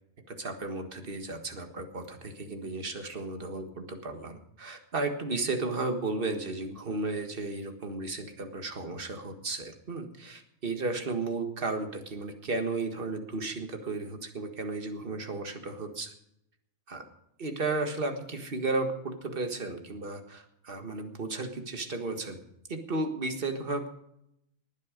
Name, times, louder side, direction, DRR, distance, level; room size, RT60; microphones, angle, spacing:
voice 1, 0.3-16.1 16.9-17.0 17.4-22.4 22.7-23.9, right 3 dB, 40° right, 6 dB, 1.7 m, -34 dB
19.5 x 9.5 x 5.1 m, 0.80 s
omnidirectional pair, 1.4 m